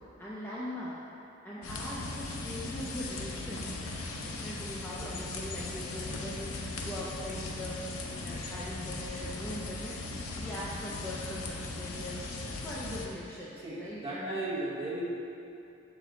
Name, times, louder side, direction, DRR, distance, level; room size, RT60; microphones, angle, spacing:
voice 1, 0.2-1.0 1.4-3.8 4.1-12.3 12.6-14.4, equal, 10° left, -8 dB, 0.5 m, -41 dB
sound 1, 1.6-13.1, left 2 dB, 85° left, 0.7 m, -38 dB
voice 2, 4.8-5.1 13.6-15.0, right 2 dB, 25° right, -7 dB, 1.3 m, -36 dB
6.7 x 5.1 x 3.8 m, 2.6 s
head